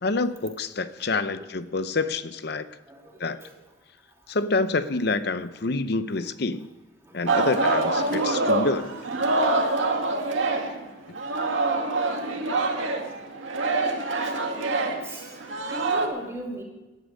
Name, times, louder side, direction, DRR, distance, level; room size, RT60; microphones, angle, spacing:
voice 1, 0.0-2.7 3.2-3.4 4.3-6.7 7.1-8.9, left 3 dB, 55° left, 12 dB, 0.7 m, -27 dB
voice 2, 1.2-1.5 2.9-3.5 7.0-7.4 8.8-9.3 15.0-15.3 15.7-16.6, right 1 dB, 15° right, -1 dB, 3.0 m, -39 dB
Singing, 7.3-10.9 11.1-16.1, right 2 dB, 85° right, 2.0 m, -25 dB
17.5 x 11.5 x 5.2 m, 1.1 s
head